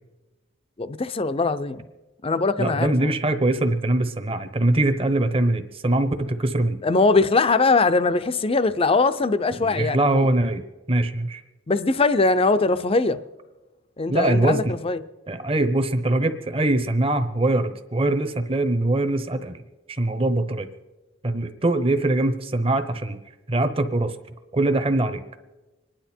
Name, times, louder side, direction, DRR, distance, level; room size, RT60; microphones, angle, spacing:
voice 1, 0.8-1.9 2.2-3.1 6.8-10.3 11.7-13.2 14.0-15.0, left 3 dB, 30° left, 0.6 m, -21 dB
voice 2, 2.6-6.8 9.5-10.6 10.9-11.4 14.1-14.8 15.3-19.6 19.9-20.7 21.2-23.2 23.5-24.1 24.5-25.2, right 2 dB, 30° right, 1.0 m, -22 dB
25.5 x 10.5 x 4.5 m
head